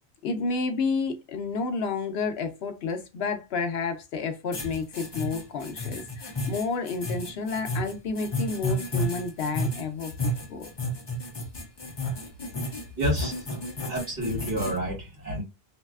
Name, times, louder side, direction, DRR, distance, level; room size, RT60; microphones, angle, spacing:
voice 1, 0.2-10.7, left 4 dB, 70° left, 0.8 m, -30 dB
sound 1, 4.5-14.8, equal, 35° left, 0.5 m, -32 dB
voice 2, 13.0-13.4 13.9-15.4, equal, 40° right, 1.8 m, -29 dB
3.1 x 2.7 x 2.3 m
omnidirectional pair, 1.1 m